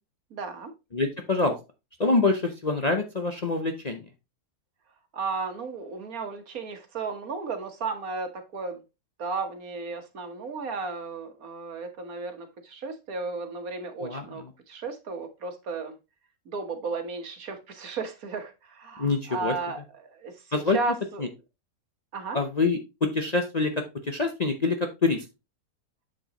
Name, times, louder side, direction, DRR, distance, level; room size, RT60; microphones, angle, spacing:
voice 1, 0.3-0.7 5.1-8.8 9.2-15.9 16.5-20.3 20.7-21.3 22.1-22.4, right 4 dB, 65° right, 1.7 m, -34 dB
voice 2, 0.9-1.6 2.0-4.0 14.0-14.5 19.0-19.5 20.5-20.8 21.2-21.3 22.3-25.2, left 3 dB, 35° left, 0.7 m, -26 dB
7.8 x 6.5 x 2.9 m
omnidirectional pair, 1.6 m